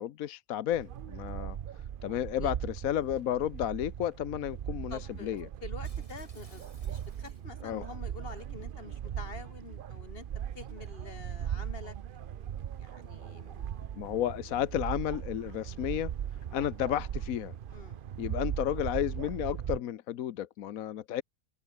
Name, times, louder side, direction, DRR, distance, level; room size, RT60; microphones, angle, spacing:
voice 1, 0.0-1.6 2.0-5.5 7.6-7.8 13.9-16.1 16.5-17.5 18.2-21.2, left 11 dB, 80° left, 1.2 m, -32 dB
sound 1, 0.7-19.8, right 9 dB, 55° right, 0.6 m, -39 dB
voice 2, 2.1-2.5 4.9-10.3 10.6-12.0 12.8-13.8 17.7-18.0, left 4 dB, 40° left, 2.0 m, -47 dB
Shatter, 5.8-7.7 8.1-8.4, left 1 dB, 25° left, 7.2 m, -60 dB
open air
omnidirectional pair, 1.5 m